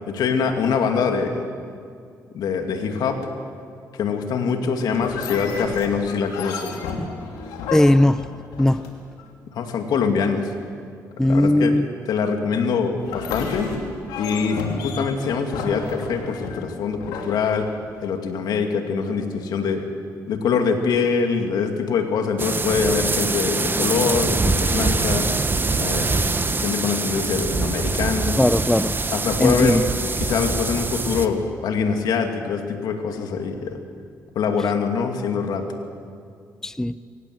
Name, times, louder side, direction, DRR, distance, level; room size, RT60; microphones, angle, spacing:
voice 1, 0.1-1.4 2.3-3.3 4.0-6.8 9.5-10.5 11.2-11.7 12.1-13.7 14.2-17.7 18.0-19.9 20.3-25.3 25.8-26.2 26.6-28.4 29.1-33.8 34.3-35.7, left 5 dB, 75° left, 5 dB, 2.5 m, -24 dB
sound 1, 4.9-9.2 13.0-18.1, left 4 dB, 90° left, 2.8 m, -32 dB
voice 2, 7.7-8.3 8.6-8.8 11.2-11.9 28.4-29.0 29.4-29.8 36.6-36.9, left 1 dB, 10° left, 15 dB, 0.6 m, -18 dB
sound 2, 22.4-31.3, right 3 dB, 30° right, 1.4 m, -24 dB
23.5 x 18.0 x 8.0 m, 2.3 s
supercardioid pair, 60°, 7 cm